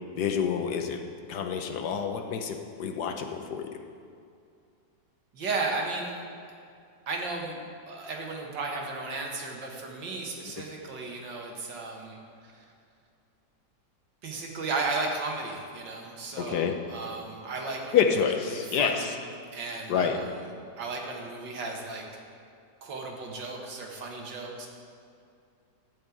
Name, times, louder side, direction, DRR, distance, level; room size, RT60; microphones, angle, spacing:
voice 1, 0.2-1.0 1.3-3.8 16.4-16.8 17.9-19.1 19.9-20.2, left 7 dB, 70° left, 5 dB, 1.4 m, -28 dB
voice 2, 5.3-6.2 7.1-7.6 7.9-12.2 14.2-18.0 18.5-19.2 19.5-20.3 20.8-22.0 22.8-24.7, right 3 dB, 85° right, 0 dB, 2.2 m, -34 dB
12.5 x 5.4 x 8.3 m, 2.4 s
omnidirectional pair, 1.9 m